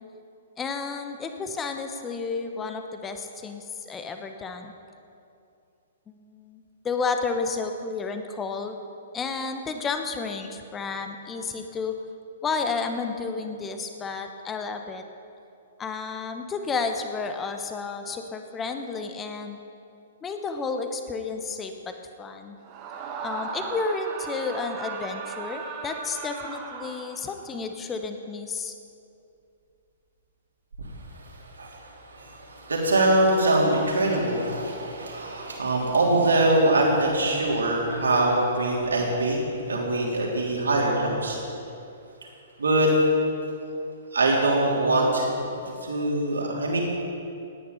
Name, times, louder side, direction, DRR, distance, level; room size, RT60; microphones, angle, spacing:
voice 1, 0.6-4.7 6.1-8.8 9.1-12.0 12.4-15.0 15.8-19.6 20.2-22.6 23.2-28.7, left 4 dB, 15° left, 6 dB, 1.2 m, -31 dB
Screaming, 22.6-27.5, right 4 dB, 30° right, 1.7 m, -36 dB
voice 2, 31.2-41.4 42.6-43.0 44.1-45.3 45.6-46.8, right 2 dB, 70° right, -2 dB, 3.4 m, -23 dB
18.0 x 10.0 x 5.5 m, 2.6 s
figure-of-eight pair, 115°, 0 cm